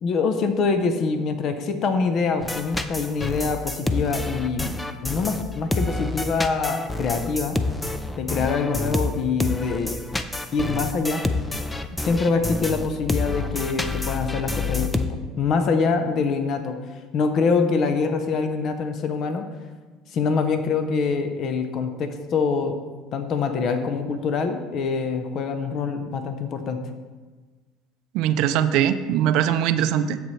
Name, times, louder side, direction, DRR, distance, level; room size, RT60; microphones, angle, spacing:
voice 1, 0.0-4.8 5.0-7.6 8.2-10.0 10.5-11.3 12.0-16.8 17.1-19.5 20.1-22.8 23.1-26.9, left 4 dB, 45° left, 7 dB, 0.7 m, -25 dB
sound 1, 2.4-15.1, left 2 dB, 10° left, 0.4 m, -28 dB
voice 2, 28.1-30.2, right 10 dB, 65° right, 11 dB, 0.5 m, -21 dB
10.0 x 7.8 x 3.2 m, 1.3 s
cardioid pair, 145°, 0 cm